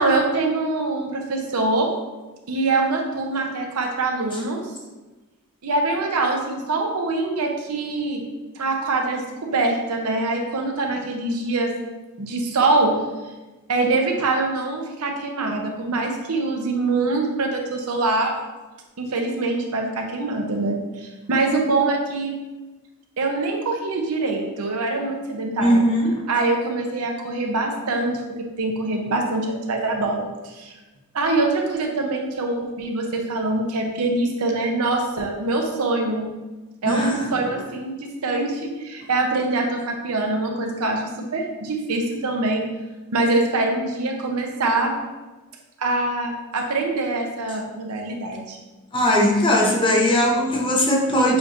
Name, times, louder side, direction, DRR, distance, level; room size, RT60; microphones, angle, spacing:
voice 1, 0.0-1.9 2.5-4.6 5.6-8.2 8.6-11.7 12.2-12.9 13.7-18.3 19.0-22.4 23.2-25.8 26.3-30.7 31.1-36.3 36.8-42.6 43.1-44.9 45.8-48.6, right 2 dB, 80° right, 2 dB, 0.7 m, -24 dB
voice 2, 25.6-26.2 36.9-37.3 48.9-51.4, equal, 20° left, 0 dB, 0.6 m, -19 dB
6.8 x 2.6 x 3.0 m, 1.1 s
head